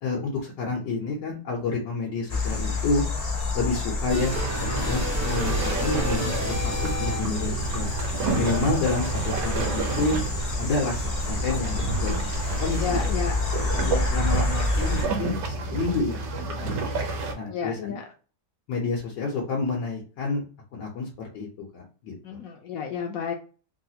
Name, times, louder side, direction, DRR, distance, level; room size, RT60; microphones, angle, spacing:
voice 1, 0.0-3.0 3.5-7.9 8.3-10.2 10.6-12.1 12.6-13.0 13.8-16.2 16.6-16.9 17.3-17.9 18.7-20.4 20.7-22.1, left 3 dB, 90° left, -2 dB, 1.5 m, -29 dB
sound 1, 2.3-15.1, left 2 dB, 50° left, 0.4 m, -29 dB
sound 2, 4.1-7.5, left 1 dB, 15° right, 0.6 m, -31 dB
sound 3, 4.3-17.3, right 3 dB, 65° right, 1.2 m, -30 dB
voice 2, 12.8-13.4 17.5-18.0 22.2-23.3, left 7 dB, 70° left, 2 dB, 0.9 m, -31 dB
3.5 x 2.4 x 2.8 m, 0.37 s
omnidirectional pair, 1.8 m